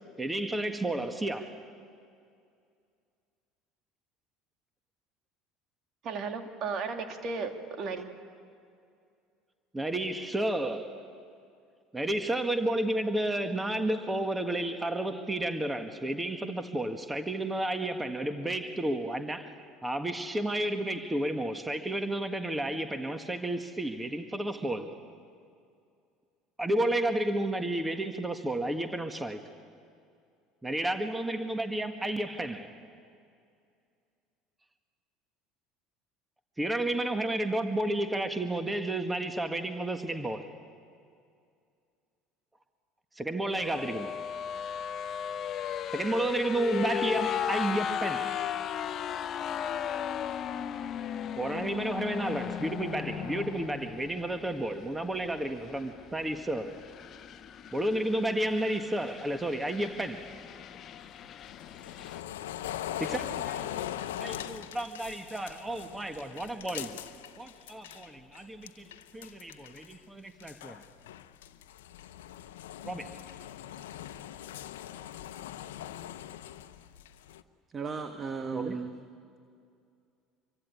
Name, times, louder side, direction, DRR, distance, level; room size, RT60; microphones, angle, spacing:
voice 1, 0.2-1.6 9.7-11.0 11.9-19.6 19.8-25.0 26.6-29.4 30.6-32.7 36.6-40.5 43.2-44.2 45.9-48.3 51.4-56.8 57.7-60.3 63.0-67.0 67.4-70.8 72.8-73.1 78.5-78.8, right 1 dB, 15° right, 1.7 m, -32 dB
voice 2, 6.0-8.0, right 4 dB, 50° right, 2.6 m, -35 dB
sound 1, 43.5-62.2, left 9 dB, 45° left, 0.8 m, -36 dB
sound 2, 61.0-68.1 68.4-70.0 70.3-77.4, left 11 dB, 75° left, 0.8 m, -41 dB
voice 3, 77.7-78.9, right 5 dB, 35° right, 1.6 m, -35 dB
26.5 x 24.0 x 8.6 m
hypercardioid pair, 65°, 0 cm